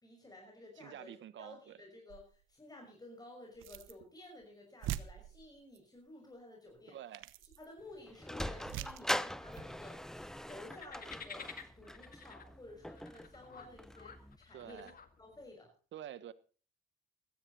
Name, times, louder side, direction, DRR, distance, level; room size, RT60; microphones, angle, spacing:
voice 1, 0.0-1.1 1.4-7.0 7.6-14.9 15.2-15.7, left 2 dB, 20° left, 6.1 m, -54 dB
voice 2, 0.8-1.8 6.9-7.3 14.5-14.9 15.9-16.3, right 11 dB, 70° right, 1.4 m, -48 dB
sound 1, 2.1-2.4 3.5-4.1 4.4-4.5 4.8-5.8 6.7-6.8 7.1-7.7 8.6-9.1 9.5-9.7, right 13 dB, 90° right, 1.0 m, -43 dB
Sliding door, 7.8-14.4, equal, 5° left, 0.7 m, -42 dB
sound 2, 10.5-15.5, left 6 dB, 45° left, 2.1 m, -52 dB
16.5 x 13.5 x 4.2 m
cardioid pair, 90°, 20 cm